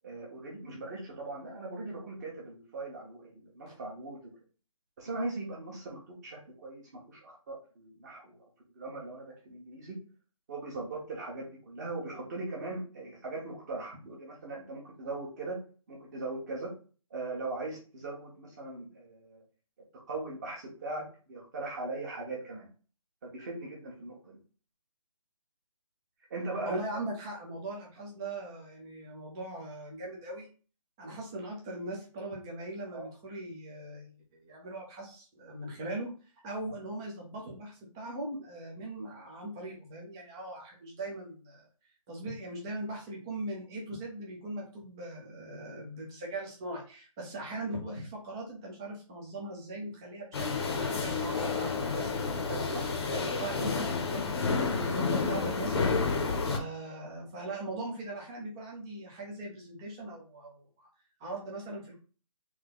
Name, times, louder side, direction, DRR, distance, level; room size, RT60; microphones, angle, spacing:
voice 1, 0.0-4.2 5.0-8.4 8.7-10.0 10.5-15.6 15.9-16.7 17.1-19.4 20.1-22.7 23.2-24.4 26.3-26.8 32.9-33.1 52.0-52.1 52.5-52.9 56.5-56.6, right 2 dB, 30° right, -3 dB, 1.2 m, -39 dB
voice 2, 26.6-30.5 31.0-36.1 36.4-41.7 42.1-52.6 53.0-56.2 56.5-60.9 61.2-62.0, right 2 dB, 5° right, -2 dB, 0.4 m, -40 dB
sound 1, 50.3-56.6, left 4 dB, 45° left, 0.8 m, -30 dB
3.8 x 2.7 x 3.9 m, 0.37 s
figure-of-eight pair, 160°, 18 cm